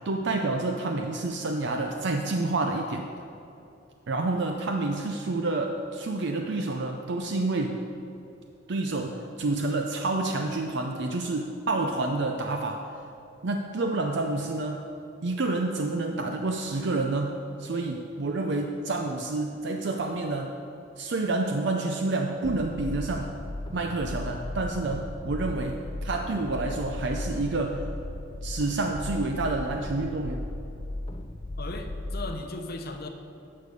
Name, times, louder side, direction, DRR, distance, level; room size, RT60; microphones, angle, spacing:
voice 1, 0.0-3.1 4.1-7.8 8.7-12.8 13.4-14.8 15.2-20.6 21.0-23.3 23.7-27.8 28.4-30.4, right 2 dB, 60° right, 4 dB, 0.6 m, -29 dB
sound 1, 22.4-32.3, left 1 dB, 25° left, 0.4 m, -36 dB
voice 2, 31.6-33.1, left 2 dB, 55° left, 5 dB, 0.8 m, -36 dB
11.0 x 6.7 x 5.3 m, 2.7 s
head